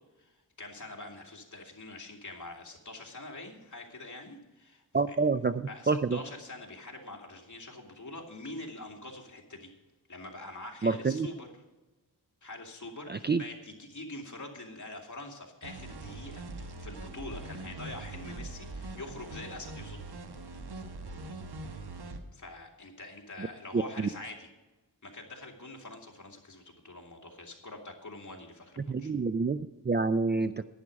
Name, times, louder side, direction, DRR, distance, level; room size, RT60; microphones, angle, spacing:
voice 1, 0.2-5.2 5.7-9.7 10.1-11.5 12.4-20.0 22.3-24.5 25.0-29.1, left 2 dB, 45° left, 0 dB, 2.5 m, -45 dB
voice 2, 4.9-6.2 10.8-11.3 13.1-13.4 23.7-24.1 28.9-30.6, right 4 dB, 25° right, 12 dB, 0.4 m, -28 dB
sound 1, 15.6-22.2, right 2 dB, 75° right, 1.2 m, -42 dB
11.0 x 9.8 x 5.2 m, 1.1 s
wide cardioid pair, 70°, 40 cm